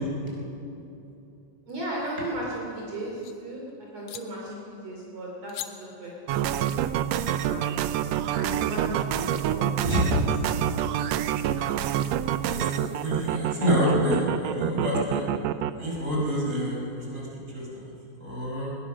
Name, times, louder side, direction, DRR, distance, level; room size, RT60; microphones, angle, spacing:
voice 1, 1.7-6.1 6.4-6.5 7.4-10.7, right 1 dB, 55° right, -3 dB, 4.1 m, -36 dB
sound 1, 2.3-3.3 4.1-4.2 5.5-5.7, left 12 dB, 70° left, 2.0 m, -41 dB
sound 2, 6.3-15.7, right 11 dB, 75° right, 1.6 m, -27 dB
voice 2, 12.5-15.2 15.8-17.3 17.5-17.8 18.2-18.8, equal, 20° right, -3 dB, 5.5 m, -27 dB
20.5 x 20.5 x 6.2 m, 2.7 s
omnidirectional pair, 3.6 m